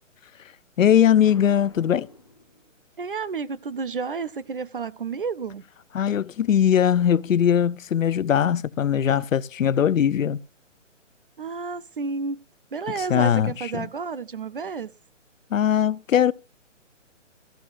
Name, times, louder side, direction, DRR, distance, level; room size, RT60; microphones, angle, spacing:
voice 1, 0.8-2.1 5.9-10.4 13.1-13.9 15.5-16.3, left 9 dB, 90° left, 0.7 m, -20 dB
Explosion, 1.2-3.0, left 3 dB, 20° left, 0.6 m, -49 dB
voice 2, 3.0-5.6 11.4-12.4 12.7-14.9, right 5 dB, 45° right, 0.5 m, -31 dB
14.0 x 12.0 x 2.5 m
hypercardioid pair, 170°, 38 cm